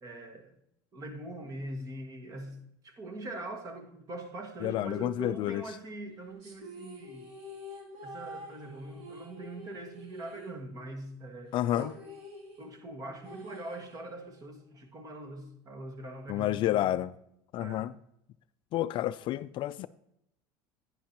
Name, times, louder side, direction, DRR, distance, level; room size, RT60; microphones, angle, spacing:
voice 1, 0.0-0.6 0.9-2.6 2.8-7.3 8.0-12.0 12.6-17.0 17.6-17.9, right 2 dB, 30° right, 1.7 m, -42 dB
voice 2, 4.6-5.6 11.5-11.9 16.3-17.1 17.5-17.9 18.7-19.9, left 13 dB, 45° left, 0.3 m, -30 dB
sound 1, 6.4-11.1 11.3-11.4 11.7-14.4, left 1 dB, 65° right, 2.7 m, -48 dB
11.5 x 9.5 x 2.9 m
supercardioid pair, 125°, 12 cm